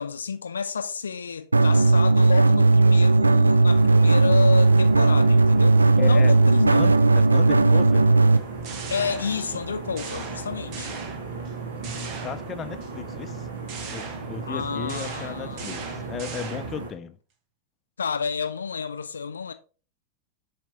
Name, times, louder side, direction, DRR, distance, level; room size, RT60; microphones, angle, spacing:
voice 1, 0.0-6.8 8.9-11.0 14.5-16.1 18.0-19.5, left 6 dB, 70° left, 0.5 m, -30 dB
sound 1, 1.5-8.4, right 3 dB, 80° right, 0.4 m, -17 dB
sound 2, 3.7-16.9, right 4 dB, 65° right, 1.5 m, -36 dB
voice 2, 6.0-6.3 6.7-8.1 11.8-13.5 13.9-17.2, left 8 dB, 25° left, 0.5 m, -35 dB
sound 3, 8.3-9.6 10.0-11.5 11.8-12.9 13.7-16.9, right 5 dB, 40° right, 1.2 m, -39 dB
7.2 x 4.3 x 3.7 m
figure-of-eight pair, 90°, 0 cm